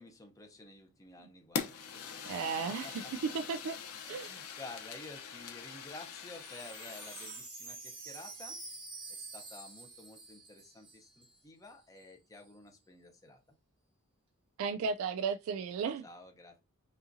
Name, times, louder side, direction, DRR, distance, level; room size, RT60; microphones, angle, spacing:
voice 1, 0.0-3.1 4.0-8.6 9.1-13.4 16.0-16.6, left 2 dB, 15° left, 0.8 m, -52 dB
Fire, 1.6-7.5, left 6 dB, 85° left, 0.8 m, -43 dB
voice 2, 2.3-3.8 4.0-4.4 14.6-16.0, right 5 dB, 65° right, 0.3 m, -35 dB
Wind chime, 6.2-11.4 11.6-11.7 12.0-12.4, right 3 dB, 20° right, 1.0 m, -48 dB
5.4 x 2.5 x 2.6 m
head